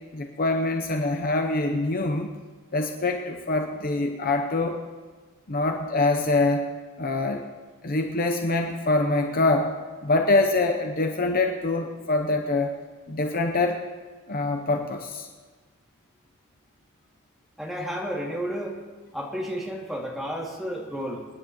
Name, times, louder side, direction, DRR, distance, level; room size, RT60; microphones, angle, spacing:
voice 1, 0.1-2.3 2.7-4.8 5.5-6.7 7.0-7.4 7.8-9.7 10.0-12.8 13.1-13.9 14.3-15.3, left 2 dB, 45° left, 4 dB, 0.8 m, -24 dB
voice 2, 17.6-18.8 19.1-21.3, equal, ahead, -4 dB, 2.3 m, -32 dB
26.5 x 10.0 x 3.0 m, 1.4 s
head